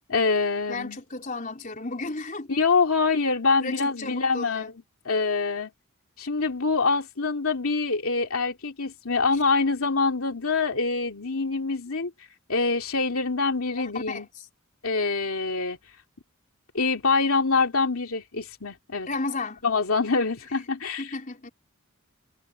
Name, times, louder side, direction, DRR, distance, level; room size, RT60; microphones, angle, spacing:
voice 1, 0.1-1.0 2.5-4.7 5.0-5.7 6.2-12.1 12.5-14.3 14.8-15.8 16.7-19.1 19.6-21.1, left 4 dB, 85° left, 2.6 m, -25 dB
voice 2, 0.7-2.5 3.6-4.7 13.7-14.5 19.1-19.6 20.6-20.7 21.0-21.5, left 3 dB, 40° left, 4.2 m, -34 dB
head